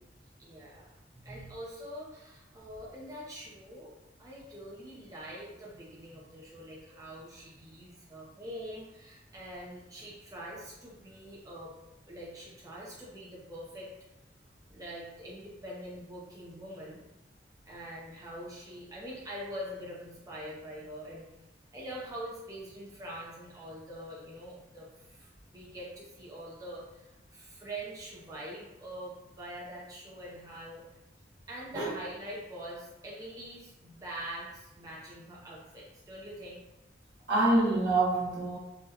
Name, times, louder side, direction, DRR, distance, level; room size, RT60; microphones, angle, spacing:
voice 1, 0.4-0.9 1.2-3.9 4.2-11.7 12.1-13.9 14.7-17.0 17.7-21.3 21.7-30.8 31.5-36.6, equal, 20° right, -5 dB, 0.5 m, -44 dB
voice 2, 37.3-38.6, right 2 dB, 75° right, -6 dB, 1.2 m, -26 dB
3.7 x 2.2 x 2.7 m, 0.97 s
head